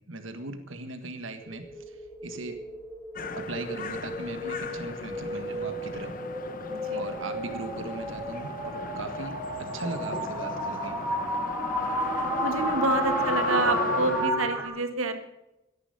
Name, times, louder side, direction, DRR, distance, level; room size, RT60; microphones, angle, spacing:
voice 1, 0.1-2.6 3.3-6.2 6.9-11.0, right 2 dB, 65° right, 7 dB, 1.7 m, -38 dB
sound 1, 1.4-14.7, equal, 5° right, 2.9 m, -32 dB
sound 2, 3.2-14.3, left 4 dB, 40° left, 1.0 m, -37 dB
voice 2, 6.7-7.1 12.4-15.3, right 3 dB, 80° right, 8 dB, 1.7 m, -28 dB
13.5 x 11.0 x 6.8 m, 0.93 s
head